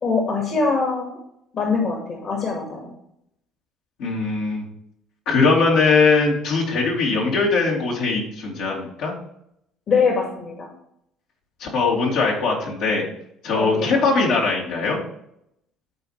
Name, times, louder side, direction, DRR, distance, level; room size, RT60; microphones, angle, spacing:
voice 1, 0.0-1.2 1.5-2.9 9.9-10.7 13.6-14.0, left 4 dB, 50° left, 1 dB, 2.2 m, -23 dB
voice 2, 4.0-4.6 5.3-9.1 11.6-13.0 13.4-15.0, left 4 dB, 75° left, -3 dB, 2.9 m, -20 dB
12.0 x 4.4 x 3.4 m, 0.75 s
supercardioid pair, 85°, 0 cm